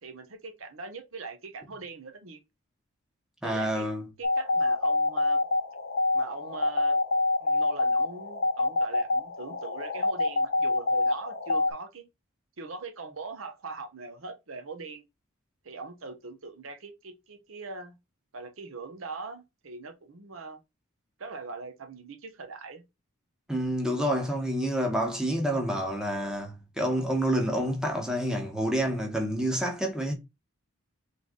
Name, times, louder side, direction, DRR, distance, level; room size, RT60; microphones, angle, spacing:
voice 1, 0.0-2.4 3.4-3.9 4.2-5.4 6.1-7.0 7.4-12.0 12.6-15.0 15.6-18.0 18.3-20.6 21.2-22.8, right 3 dB, 70° right, 0.9 m, -41 dB
voice 2, 3.4-4.1 23.5-30.1, equal, 5° right, 1.2 m, -28 dB
sound 1, 4.2-11.7, left 2 dB, 50° left, 1.0 m, -26 dB
3.8 x 3.3 x 3.8 m
head